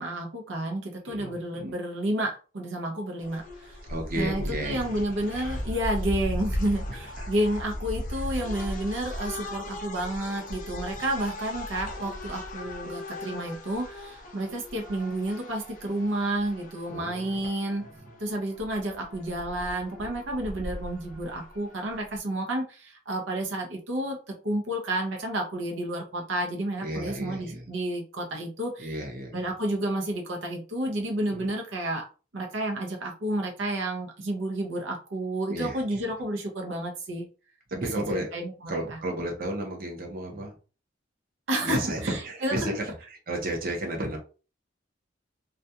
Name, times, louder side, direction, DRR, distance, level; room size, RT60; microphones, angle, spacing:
voice 1, 0.0-3.8 4.2-17.9 18.2-28.9 29.3-32.1 32.3-37.3 37.8-39.0 41.5-42.8, right 1 dB, 85° right, 2 dB, 0.7 m, -31 dB
voice 2, 1.1-1.7 3.9-4.9 6.9-7.3 8.4-8.5 16.9-17.4 18.1-18.2 26.8-27.7 28.8-29.5 31.3-31.5 35.5-36.0 37.7-38.3 38.7-40.6 41.6-44.2, right 1 dB, 50° right, 1 dB, 0.7 m, -33 dB
sound 1, 3.2-22.2, left 1 dB, 45° left, 0.6 m, -37 dB
2.4 x 2.2 x 2.7 m, 0.34 s
head